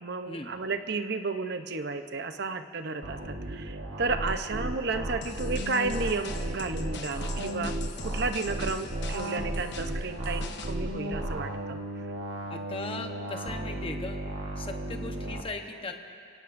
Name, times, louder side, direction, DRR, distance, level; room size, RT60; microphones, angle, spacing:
voice 1, 0.0-7.7 8.0-11.8, right 3 dB, 55° right, 8 dB, 0.8 m, -32 dB
sound 1, 3.0-15.4, right 1 dB, 85° right, 1.4 m, -34 dB
sound 2, 5.2-10.8, left 5 dB, 60° left, 1.0 m, -43 dB
voice 2, 12.5-14.2 14.6-15.9, left 2 dB, 30° left, 4 dB, 1.0 m, -38 dB
28.5 x 18.0 x 2.6 m, 2.5 s
head